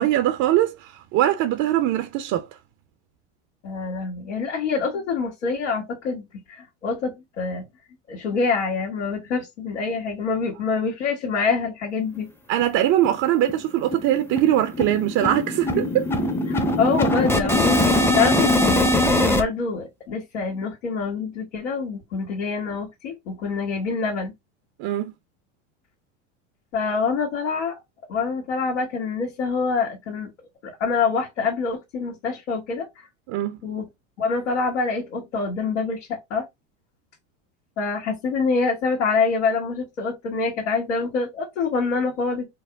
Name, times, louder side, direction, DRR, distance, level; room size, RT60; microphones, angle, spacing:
voice 1, 0.0-2.5 12.5-16.0 24.8-25.1 33.3-33.6, right 12 dB, 50° right, 0.6 m, -22 dB
voice 2, 3.6-7.7 8.1-12.3 15.7-15.8 16.5-24.3 26.7-27.8 28.1-30.3 30.6-32.9 33.6-33.9 34.2-36.4 37.8-42.5, left 4 dB, 85° left, 1.6 m, -26 dB
sound 1, 12.2-12.3 12.6-12.7 13.0-13.2 13.5-19.4, left 1 dB, 5° left, 0.6 m, -22 dB
4.5 x 2.0 x 3.5 m
supercardioid pair, 110°, 36 cm